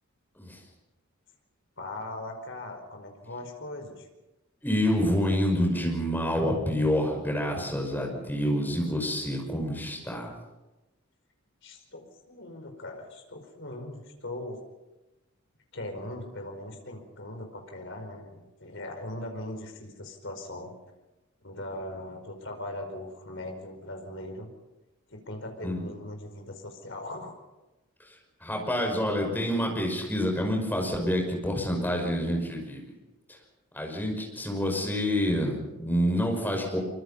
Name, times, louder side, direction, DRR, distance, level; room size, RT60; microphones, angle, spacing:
voice 1, 1.8-4.1 11.6-14.6 15.7-20.7 21.4-24.5 25.1-27.4, left 1 dB, 55° left, 4 dB, 5.0 m, -40 dB
voice 2, 4.6-10.3 25.6-25.9 28.1-28.2 28.4-32.9 33.7-36.8, equal, 10° left, 1 dB, 5.7 m, -27 dB
25.0 x 24.0 x 5.6 m, 1.1 s
head